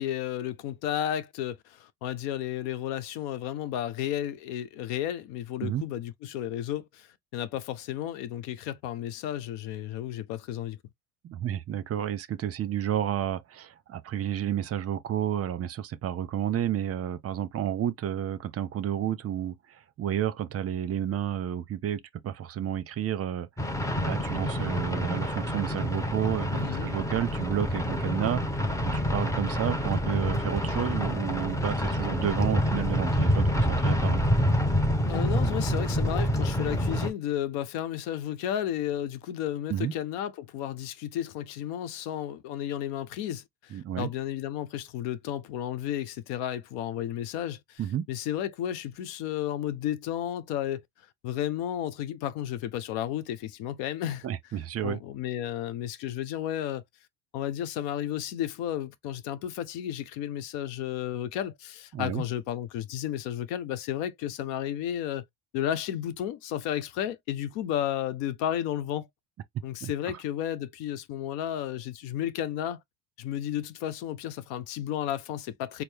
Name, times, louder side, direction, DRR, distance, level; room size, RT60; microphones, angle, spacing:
voice 1, 0.0-10.8 26.6-26.9 35.1-47.8 48.1-50.8 51.2-54.3 54.8-56.8 57.3-65.2 65.5-69.1 69.6-72.8 73.2-75.8, left 11 dB, 75° left, 0.8 m, -33 dB
voice 2, 11.2-23.5 24.0-28.4 28.9-34.2 39.7-39.9 43.7-44.1 47.8-48.1 54.2-55.0 61.9-62.2 69.8-69.9, right 10 dB, 35° right, 0.6 m, -31 dB
sound 1, 23.6-37.1, equal, 5° left, 0.7 m, -27 dB
4.4 x 2.0 x 3.4 m
supercardioid pair, 105°, 44 cm